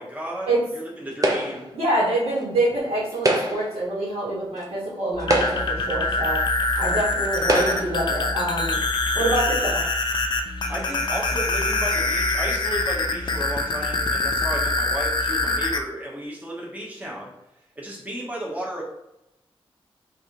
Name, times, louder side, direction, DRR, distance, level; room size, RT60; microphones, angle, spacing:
voice 1, 0.0-1.7 10.4-17.3 17.8-18.8, right 1 dB, 15° right, -4 dB, 1.0 m, -33 dB
sound 1, 1.2-1.8 3.1-3.8 4.6-4.7 5.2-5.9 6.8-6.9 7.4-8.0, right 1 dB, 35° right, 0.5 m, -24 dB
voice 2, 1.7-6.4 6.8-8.8 9.1-9.8, right 1 dB, 85° right, -8 dB, 1.2 m, -26 dB
sound 2, 5.1-15.8, left 2 dB, 50° left, 0.4 m, -24 dB
3.2 x 2.6 x 2.9 m, 0.88 s
cardioid pair, 75°, 10 cm